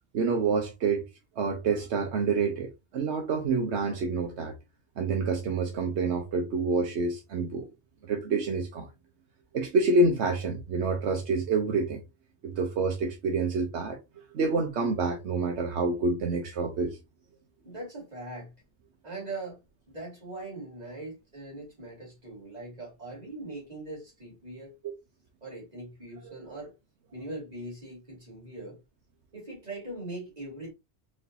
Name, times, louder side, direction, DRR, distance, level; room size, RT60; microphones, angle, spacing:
voice 1, 0.1-1.0 1.4-4.5 5.0-7.7 8.1-8.9 9.5-12.0 12.4-14.0 14.3-17.0, right 3 dB, 80° right, 1.1 m, -27 dB
voice 2, 17.6-18.5 19.0-19.6 19.9-24.8 25.4-26.7 27.1-28.8 29.3-30.7, right 2 dB, 40° right, 2.6 m, -41 dB
4.2 x 3.2 x 2.7 m
omnidirectional pair, 1.1 m